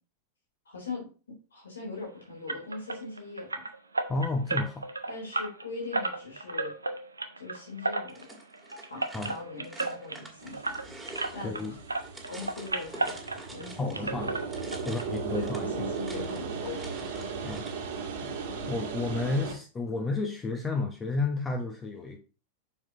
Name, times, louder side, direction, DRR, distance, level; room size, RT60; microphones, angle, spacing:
voice 1, 0.6-1.1 1.5-3.6 5.1-6.7 7.4-8.2 8.9-10.8 11.3-11.8 12.3-14.1 15.3-16.9, left 4 dB, 70° left, 3.6 m, -41 dB
sound 1, 2.5-11.6 11.9-13.7 13.9-15.1 15.3-15.4 15.9-16.0 16.3-16.4, right 3 dB, 80° right, 0.7 m, -34 dB
voice 2, 4.1-4.9 9.1-9.3 11.4-11.7 13.8-14.4 14.8-15.9 17.4-17.7 18.2-18.3 18.7-22.2, left 3 dB, 20° left, 1.0 m, -31 dB
sound 2, 8.1-14.0 14.3-17.9, right 2 dB, 5° right, 1.9 m, -47 dB
sound 3, 10.4-19.5, right 5 dB, 55° right, 1.7 m, -37 dB
7.2 x 6.6 x 2.9 m
figure-of-eight pair, 90°, 0 cm